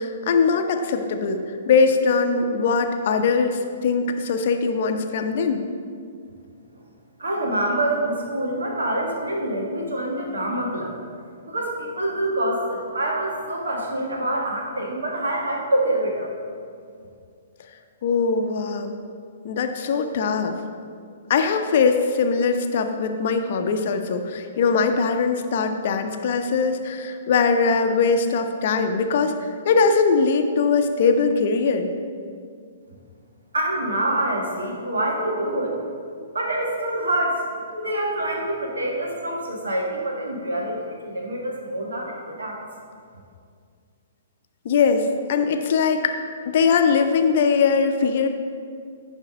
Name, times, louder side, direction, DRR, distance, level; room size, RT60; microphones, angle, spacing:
voice 1, 0.0-5.7 18.0-19.0 19.4-20.6 21.3-31.9 44.6-46.2 46.5-48.3, left 5 dB, 50° left, 6 dB, 0.7 m, -21 dB
voice 2, 7.2-10.9 11.5-16.3 33.5-35.8 36.3-37.4 37.7-42.6, right 1 dB, 75° right, -1 dB, 1.6 m, -26 dB
10.5 x 3.6 x 5.1 m, 2.2 s
figure-of-eight pair, 120°, 0 cm